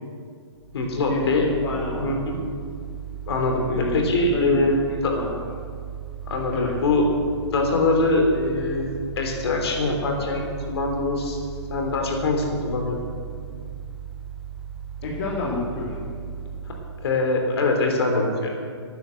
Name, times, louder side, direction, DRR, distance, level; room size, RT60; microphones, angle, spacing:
Mechanical fan, 0.6-17.4, right 9 dB, 5° right, 1.4 m, -37 dB
voice 1, 0.7-1.5 2.0-2.4 3.3-4.8 5.0-5.2 6.2-7.1 7.5-8.9 9.2-10.4 10.7-11.4 11.7-13.1 17.0-18.5, left 2 dB, 60° left, 2 dB, 3.2 m, -23 dB
voice 2, 1.6-2.2 3.7-4.0 4.3-4.6 5.1-5.5 6.5-6.8 15.0-16.1, left 3 dB, 40° left, -4 dB, 2.4 m, -29 dB
12.0 x 9.5 x 7.8 m, 2.1 s
hypercardioid pair, 155°, 15 cm